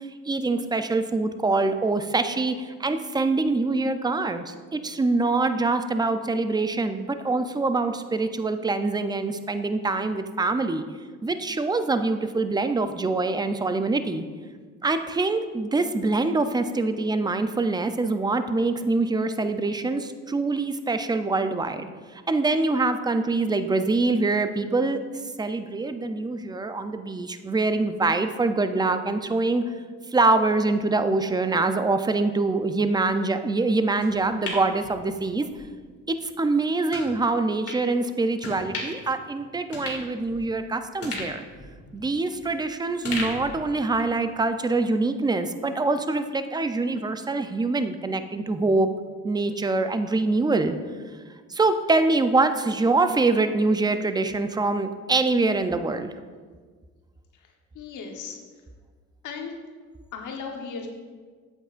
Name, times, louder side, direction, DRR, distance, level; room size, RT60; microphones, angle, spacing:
voice 1, 0.3-10.8 11.2-14.2 14.8-21.9 22.3-25.0 25.4-29.7 30.1-35.5 36.1-41.5 41.9-48.9 49.2-50.8 51.5-56.1, right 3 dB, 15° right, 9 dB, 0.5 m, -24 dB
sound 1, 34.0-35.6 36.0-36.1 36.9-37.1 37.7-37.8 38.4-39.1 39.4-39.5 39.7-40.6 41.0-42.6 43.0-44.2 44.5-44.6, left 2 dB, 50° left, 2.3 m, -36 dB
voice 2, 57.7-58.4 59.2-59.6 60.1-60.9, left 5 dB, 80° left, 2 dB, 1.1 m, -36 dB
8.2 x 8.0 x 2.5 m, 1.5 s
cardioid pair, 90°, 30 cm